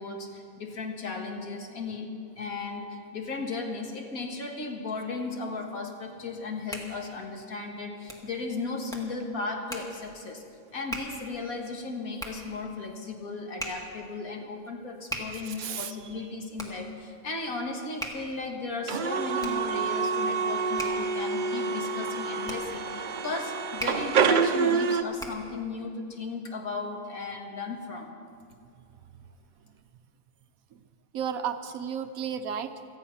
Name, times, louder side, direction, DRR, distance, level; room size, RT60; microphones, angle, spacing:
voice 1, 0.0-10.4 10.7-28.1, left 3 dB, 65° left, 2 dB, 2.0 m, -36 dB
Hands, 6.3-25.6, right 1 dB, ahead, 1.6 m, -43 dB
voice 2, 15.3-16.3 21.8-22.6 28.8-29.3 29.6-29.8 30.7-30.9 31.1-32.9, right 8 dB, 65° right, 9 dB, 1.1 m, -36 dB
sound 1, 18.9-25.0, right 5 dB, 85° right, 0.4 m, -27 dB
17.5 x 13.5 x 5.7 m, 2.4 s
omnidirectional pair, 1.7 m